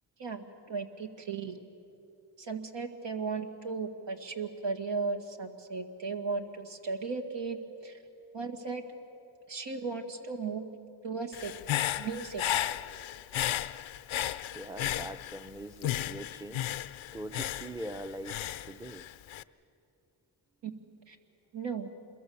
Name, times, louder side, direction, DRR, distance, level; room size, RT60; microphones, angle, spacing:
voice 1, 0.2-1.6 2.4-8.0 8.3-8.8 9.5-10.7 11.0-11.5 12.0-12.6 20.6-20.8 21.1-21.2 21.5-21.9, right 4 dB, 65° right, 5 dB, 1.9 m, -36 dB
Human voice / Breathing, 11.3-15.5 15.8-19.4, left 13 dB, 85° left, 0.6 m, -34 dB
voice 2, 14.5-16.8 17.1-19.0, right 1 dB, 5° right, 11 dB, 0.8 m, -42 dB
26.5 x 21.5 x 7.1 m, 2.7 s
cardioid pair, 75°, 46 cm